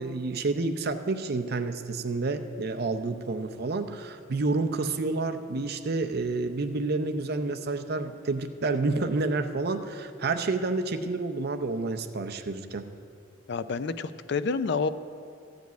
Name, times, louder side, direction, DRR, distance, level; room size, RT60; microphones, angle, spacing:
voice 1, 0.0-12.9, right 3 dB, 50° right, 8 dB, 0.6 m, -29 dB
voice 2, 13.5-14.9, left 4 dB, 60° left, 13 dB, 0.4 m, -28 dB
14.0 x 5.2 x 9.2 m, 2.5 s
head